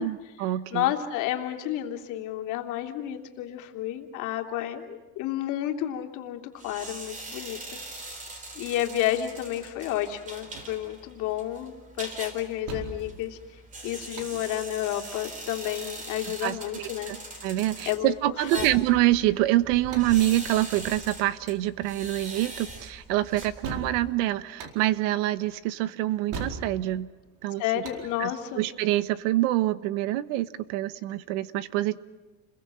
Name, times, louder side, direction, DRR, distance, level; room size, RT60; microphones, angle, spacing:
voice 1, 0.0-0.9 16.3-17.2 17.4-27.1 27.4-27.6 28.2-32.0, right 15 dB, 85° right, 14 dB, 1.3 m, -26 dB
voice 2, 0.7-13.4 13.8-17.1 17.8-18.7 27.6-28.6, left 12 dB, 55° left, 3 dB, 3.0 m, -31 dB
sound 1, 6.6-24.1, right 2 dB, 20° right, 3.8 m, -42 dB
sound 2, 9.9-29.0, right 4 dB, 55° right, 4.5 m, -44 dB
30.0 x 22.0 x 7.7 m, 1.2 s
cardioid pair, 165°, 37 cm